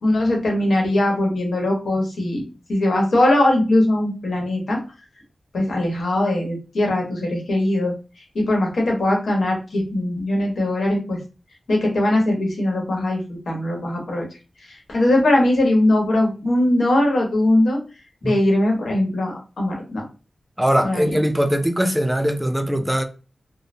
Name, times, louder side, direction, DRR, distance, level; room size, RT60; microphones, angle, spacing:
voice 1, 0.0-2.4 2.7-4.8 5.5-7.9 8.3-11.2 11.7-14.3 14.9-17.8 18.2-20.0 20.8-21.2, left 1 dB, 90° left, 1.0 m, -20 dB
voice 2, 20.6-23.0, equal, 10° right, 0.4 m, -21 dB
3.2 x 2.1 x 2.6 m
cardioid pair, 60°, 0 cm